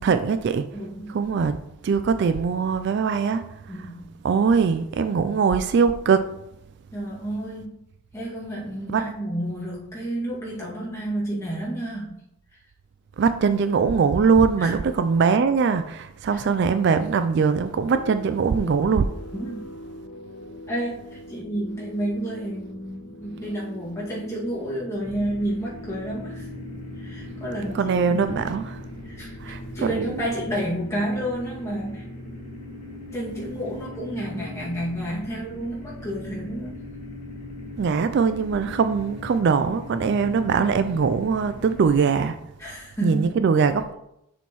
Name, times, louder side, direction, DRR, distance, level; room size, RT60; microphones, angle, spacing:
voice 1, 0.0-0.7 1.1-3.5 3.7-3.9 4.2-6.3 8.9-9.1 13.2-19.1 27.7-28.8 29.4-30.3 37.8-42.4 43.0-43.9, right 5 dB, 50° right, 0.3 m, -22 dB
voice 2, 0.7-1.2 3.7-4.0 6.9-7.8 8.1-12.2 14.6-14.7 16.3-16.4 19.3-19.6 20.7-26.5 27.0-28.5 29.0-29.4 29.7-32.0 33.1-36.7 42.6-43.4, right 1 dB, 15° left, 2.0 m, -30 dB
sound 1, 17.7-34.0, left 1 dB, 70° left, 0.8 m, -44 dB
sound 2, 25.0-42.0, left 1 dB, 35° left, 2.1 m, -39 dB
6.9 x 6.4 x 3.0 m
head